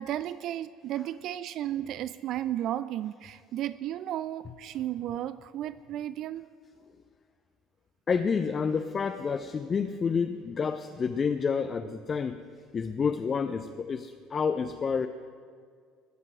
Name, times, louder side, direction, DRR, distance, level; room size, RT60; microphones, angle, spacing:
voice 1, 0.0-6.5, right 12 dB, 50° right, 15 dB, 0.3 m, -34 dB
voice 2, 8.1-12.4 12.7-15.1, left 5 dB, 30° left, 9 dB, 0.6 m, -29 dB
21.0 x 7.5 x 6.1 m, 2.1 s
figure-of-eight pair, 60°, 0 cm